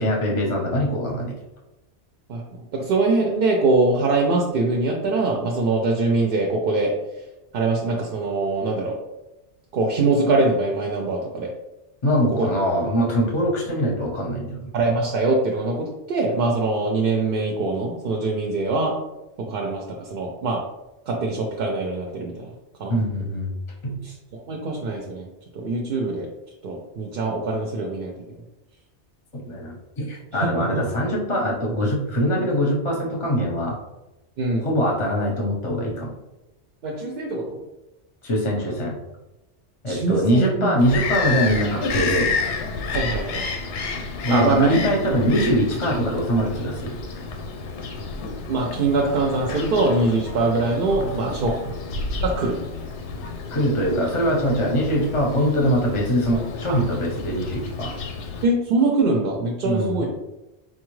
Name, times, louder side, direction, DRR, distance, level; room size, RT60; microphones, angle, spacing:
voice 1, 0.0-1.3 12.0-14.7 22.9-23.5 23.8-24.0 29.3-33.8 34.6-36.1 38.2-39.0 39.8-42.3 44.2-47.0 51.0-51.3 53.5-57.9 59.6-60.1, equal, 35° left, -1 dB, 0.7 m, -23 dB
voice 2, 2.3-6.9 7.5-8.9 9.7-11.5 12.4-12.5 14.7-18.9 19.4-20.6 21.1-22.5 22.8-23.0 24.0-25.3 25.5-26.3 26.6-28.1 30.3-30.8 34.4-34.7 36.8-37.6 39.9-40.7 42.9-43.5 44.3-44.8 48.5-51.5 52.2-52.6 56.7-56.8 58.4-60.1, right 3 dB, 60° right, 1 dB, 0.6 m, -23 dB
Bird vocalization bird call bird song, 40.8-58.5, left 4 dB, 85° left, 0.9 m, -30 dB
4.2 x 2.3 x 3.1 m, 0.98 s
omnidirectional pair, 1.2 m